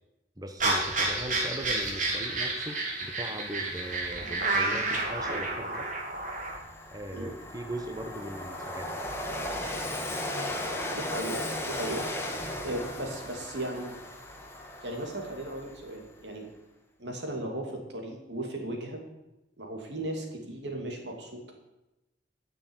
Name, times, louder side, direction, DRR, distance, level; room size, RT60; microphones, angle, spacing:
voice 1, 0.4-5.9 6.9-8.9, equal, 20° right, 4 dB, 1.0 m, -39 dB
sound 1, 0.6-6.6, right 2 dB, 45° right, 2.4 m, -30 dB
Train, 5.3-5.4 5.8-16.2, left 1 dB, 15° left, 1.5 m, -37 dB
voice 2, 10.9-12.1 12.6-13.9 14.8-16.5 17.0-19.0 19.6-21.5, right 1 dB, 80° right, 2 dB, 2.6 m, -36 dB
9.7 x 6.8 x 9.0 m, 0.97 s
head